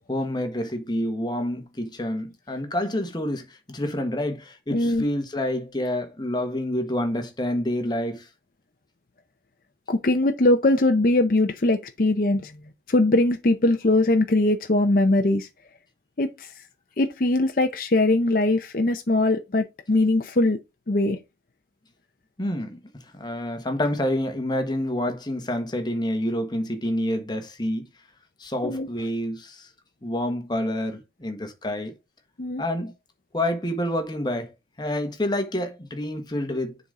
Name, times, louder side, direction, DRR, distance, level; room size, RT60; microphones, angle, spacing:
voice 1, 0.1-8.3 22.4-22.8 23.1-27.8 28.4-29.7 30.0-31.9 32.6-32.9 33.3-34.5 34.8-36.8, left 1 dB, 25° left, 1.3 m, -28 dB
voice 2, 4.7-5.0 9.9-12.5 12.9-15.5 16.2-16.5 17.0-20.6 20.9-21.2 28.6-28.9 32.4-32.6, left 2 dB, 50° left, 0.7 m, -21 dB
7.1 x 4.0 x 4.8 m
head